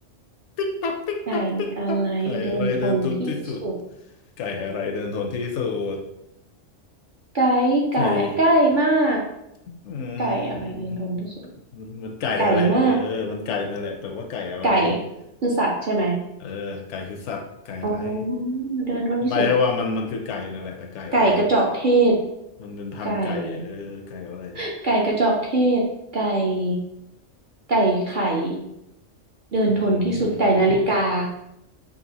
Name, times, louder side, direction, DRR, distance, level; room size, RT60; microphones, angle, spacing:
voice 1, 0.6-3.7 4.4-6.0 8.0-8.4 9.7-11.3 11.7-14.9 16.4-18.2 19.2-21.4 22.6-24.6 29.8-30.5, left 5 dB, 70° left, 4 dB, 0.8 m, -29 dB
voice 2, 1.3-3.3 3.6-3.7 7.3-9.2 10.2-11.3 12.4-13.0 14.6-15.0 15.4-16.2 17.8-19.4 21.1-22.1 23.0-23.6 24.5-25.8 26.1-26.8 27.7-28.6 29.5-31.3, right 2 dB, 50° right, -2 dB, 0.7 m, -21 dB
5.3 x 2.4 x 2.8 m, 0.83 s
omnidirectional pair, 1.3 m